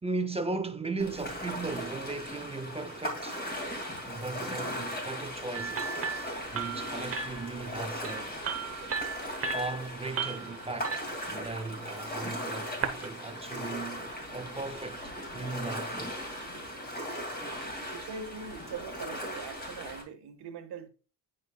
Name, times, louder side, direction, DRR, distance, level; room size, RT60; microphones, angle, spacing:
voice 1, 0.0-3.4 4.0-8.4 9.5-16.2, right 3 dB, 15° right, 0.6 m, -37 dB
Ocean, 1.0-20.0, equal, 20° left, 2.5 m, -38 dB
sound 1, 5.5-13.1, right 5 dB, 30° right, 1.0 m, -37 dB
voice 2, 17.9-20.9, right 5 dB, 60° right, 1.6 m, -42 dB
9.8 x 4.9 x 2.3 m
cardioid pair, 110°, 43 cm